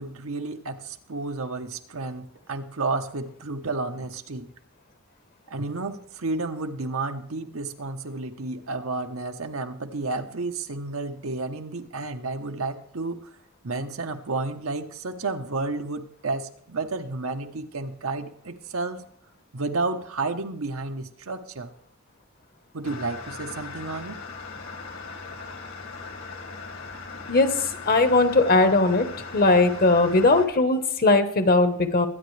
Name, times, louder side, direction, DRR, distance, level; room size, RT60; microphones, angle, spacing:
voice 1, 0.0-4.5 5.5-13.3 13.6-19.0 19.5-21.7 22.7-24.2, right 3 dB, 70° right, 7 dB, 1.0 m, -31 dB
sound 1, 22.8-30.5, left 4 dB, 65° left, 2.1 m, -39 dB
voice 2, 27.9-29.1 29.3-32.1, left 2 dB, 45° left, 9 dB, 1.2 m, -19 dB
22.5 x 9.5 x 3.3 m, 0.63 s
head